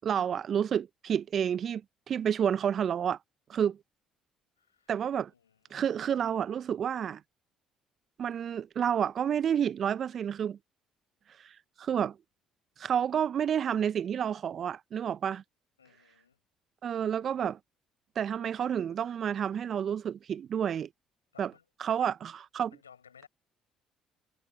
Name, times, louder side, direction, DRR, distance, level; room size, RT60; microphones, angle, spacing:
voice 1, 0.0-1.8 2.1-3.2 3.5-3.8 4.9-5.3 5.7-7.2 8.2-10.6 11.4-12.2 12.8-15.4 16.8-17.6 18.2-20.9 21.4-21.5 21.8-22.7, right 8 dB, 50° right, 0.7 m, -30 dB
voice 2, 4.6-4.9 5.3-5.8 15.8-16.4 18.4-18.5 21.3-22.1 22.7-23.3, left 7 dB, 90° left, 7.6 m, -58 dB
figure-of-eight pair, 50°, 0 cm